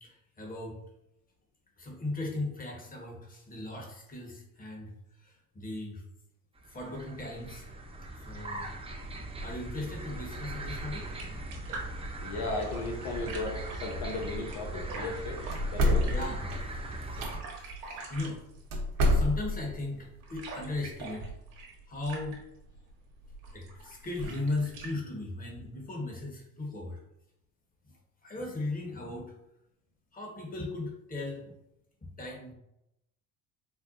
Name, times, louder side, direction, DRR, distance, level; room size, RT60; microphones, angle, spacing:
voice 1, 0.0-0.8 1.8-4.9 5.2-6.0 6.7-7.6 8.2-8.7 9.4-11.1 16.0-16.5 17.2-17.3 18.1-18.4 19.1-21.3 21.9-22.4 23.5-27.0 28.2-29.3 30.1-31.5 32.2-32.5, left 2 dB, 20° left, -1 dB, 1.2 m, -37 dB
sound 1, 6.6-17.4, right 1 dB, 15° right, 0.6 m, -40 dB
sound 2, 10.5-24.9, right 3 dB, 80° right, 1.0 m, -45 dB
voice 2, 12.2-15.4 15.7-16.1, left 2 dB, 65° left, 0 dB, 0.8 m, -35 dB
sound 3, 15.5-17.3 18.7-19.7, left 1 dB, 55° right, 0.9 m, -27 dB
4.5 x 2.2 x 2.5 m, 0.83 s
hypercardioid pair, 70°, 40 cm